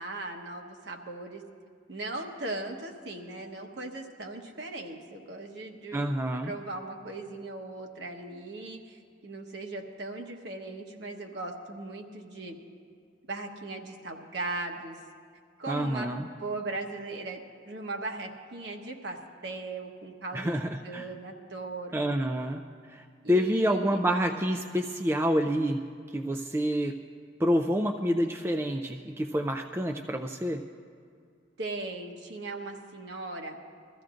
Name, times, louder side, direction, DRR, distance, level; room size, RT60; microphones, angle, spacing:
voice 1, 0.0-1.4 1.9-6.1 6.4-12.6 13.3-15.0 15.6-22.0 23.2-24.0 31.6-33.6, right 2 dB, 60° right, 2 dB, 1.1 m, -38 dB
voice 2, 5.9-6.5 15.7-16.3 20.3-21.1 21.9-25.8 26.1-27.0 27.4-30.6, equal, 15° right, 4 dB, 0.3 m, -28 dB
22.0 x 14.5 x 2.5 m, 2.2 s
head